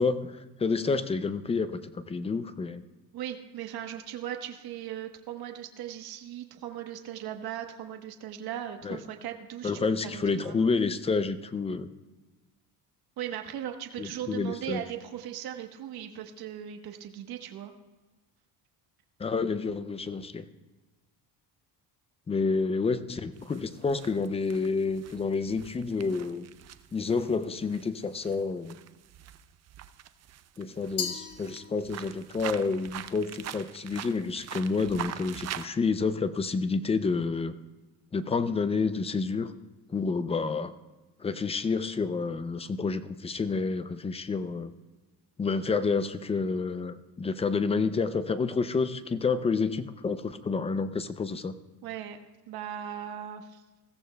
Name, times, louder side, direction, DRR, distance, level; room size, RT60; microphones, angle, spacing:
voice 1, 0.0-2.8 8.8-9.0 9.6-11.9 14.0-14.8 19.2-20.5 22.3-26.5 26.9-28.8 30.6-37.5 38.1-39.5 39.9-40.7 41.2-44.7 45.4-51.5, left 4 dB, 15° left, 12 dB, 0.3 m, -29 dB
voice 2, 3.1-10.7 13.2-17.7 51.8-52.2 52.5-53.6, right 10 dB, 60° right, 5 dB, 1.1 m, -38 dB
sound 1, 23.4-35.7, right 10 dB, 40° right, 0.5 m, -43 dB
Glass, 31.0-32.2, left 6 dB, 45° left, 1.4 m, -36 dB
20.5 x 15.0 x 2.2 m, 1.2 s
cardioid pair, 130°, 43 cm